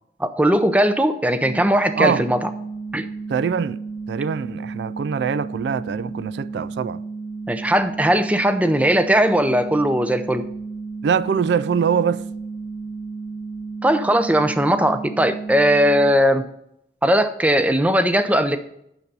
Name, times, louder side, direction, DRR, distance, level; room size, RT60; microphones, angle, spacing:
voice 1, 0.2-2.5 2.9-3.1 7.5-10.5 13.8-16.4 17.0-18.6, equal, 10° right, 0.5 m, -19 dB
sound 1, 1.4-16.1, right 4 dB, 25° right, 1.2 m, -33 dB
voice 2, 3.3-3.8 4.1-7.0 11.0-12.3, right 6 dB, 75° right, 0.3 m, -23 dB
9.1 x 6.8 x 5.4 m
head